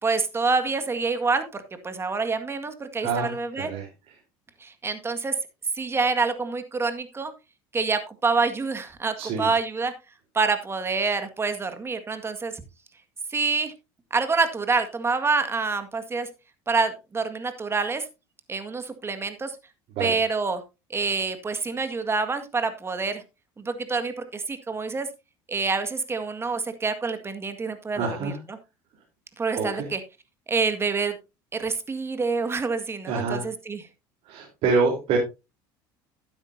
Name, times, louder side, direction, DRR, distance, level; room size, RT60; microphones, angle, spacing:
voice 1, 0.0-3.7 4.6-5.4 5.8-7.3 7.7-9.9 10.3-12.6 13.3-13.7 14.1-16.3 16.7-18.1 18.5-19.5 20.0-20.6 20.9-23.2 23.6-25.1 25.5-28.6 29.4-30.0 30.5-31.2 31.5-33.8, right 4 dB, 20° right, 9 dB, 1.8 m, -27 dB
voice 2, 3.0-3.9 9.2-9.5 19.9-20.2 27.9-28.4 29.5-29.9 33.0-33.5 34.3-35.2, right 4 dB, 60° right, -1 dB, 3.8 m, -26 dB
12.0 x 9.8 x 2.7 m, 0.26 s
supercardioid pair, 95°, 11 cm